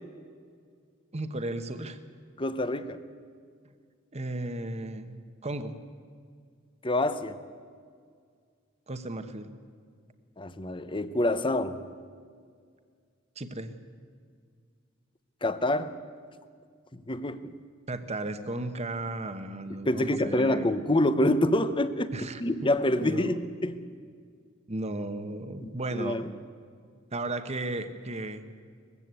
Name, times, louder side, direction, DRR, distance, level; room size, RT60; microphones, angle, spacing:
voice 1, 1.1-2.0 3.6-3.7 4.1-5.2 5.4-5.8 8.9-9.5 13.4-13.7 17.9-20.8 22.1-22.4 23.0-23.4 24.7-26.2 27.1-28.4, right 2 dB, 35° right, 9 dB, 1.2 m, -35 dB
voice 2, 2.4-3.0 6.8-7.3 10.4-11.8 15.4-15.9 16.9-17.5 19.8-23.8 25.6-26.2, left 1 dB, 25° left, 13 dB, 0.9 m, -27 dB
20.5 x 15.5 x 8.3 m, 2.1 s
head